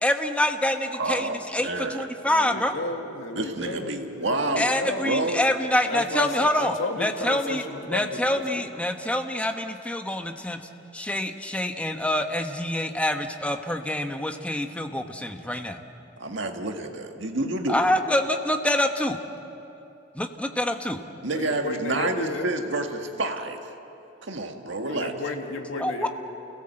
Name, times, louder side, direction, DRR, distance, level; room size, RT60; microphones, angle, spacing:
voice 1, 0.0-2.7 4.6-10.6 10.9-15.8 17.7-19.2 20.1-21.0 25.8-26.1, left 1 dB, 5° left, 5 dB, 1.1 m, -26 dB
voice 2, 1.0-2.1 3.4-5.4 6.2-6.3 16.2-17.8 21.2-23.6 24.2-25.1, right 2 dB, 65° right, 4 dB, 1.8 m, -29 dB
voice 3, 2.2-5.1 5.9-8.7 21.2-22.5 24.8-26.1, left 2 dB, 85° left, 3 dB, 2.2 m, -33 dB
29.0 x 17.0 x 7.8 m, 2.9 s
head